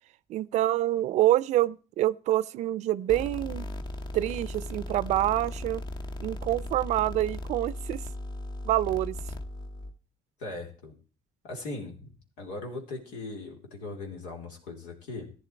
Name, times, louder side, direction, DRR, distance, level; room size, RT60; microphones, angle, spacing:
voice 1, 0.3-3.6 4.1-5.8 6.2-8.0 8.6-9.2, right 14 dB, 75° right, 0.5 m, -26 dB
sound 1, 3.1-9.9, left 1 dB, 40° left, 1.2 m, -37 dB
voice 2, 10.4-10.9 11.4-12.1 12.4-15.3, left 2 dB, 90° left, 3.2 m, -39 dB
14.5 x 9.9 x 4.5 m
supercardioid pair, 70°, 12 cm